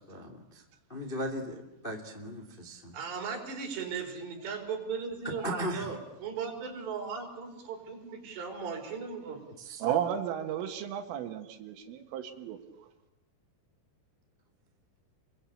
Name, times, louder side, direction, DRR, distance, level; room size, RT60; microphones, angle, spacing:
voice 1, 0.1-0.6 0.9-2.9 5.4-5.9 9.6-9.8, equal, 20° left, 4 dB, 1.2 m, -37 dB
voice 2, 2.9-9.4, right 5 dB, 55° right, 4 dB, 6.3 m, -37 dB
voice 3, 9.8-12.9, right 10 dB, 75° right, 6 dB, 4.0 m, -33 dB
29.0 x 23.5 x 8.5 m, 0.95 s
omnidirectional pair, 5.9 m